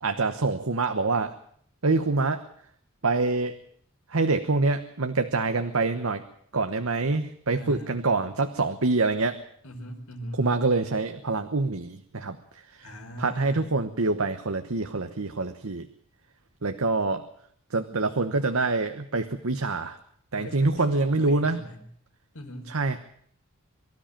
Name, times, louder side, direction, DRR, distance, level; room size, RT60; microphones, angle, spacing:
voice 1, 0.0-1.3 1.8-2.4 3.0-3.6 4.1-6.2 6.5-9.4 10.3-12.4 12.8-12.9 13.2-15.9 16.6-17.2 17.7-20.0 20.3-21.6 22.7-23.0, right 3 dB, 75° right, 8 dB, 1.1 m, -25 dB
voice 2, 7.5-8.1 9.6-10.5 12.8-13.6 20.4-21.8 22.3-22.7, equal, 80° left, 5 dB, 4.3 m, -40 dB
24.0 x 13.0 x 8.9 m, 0.64 s
head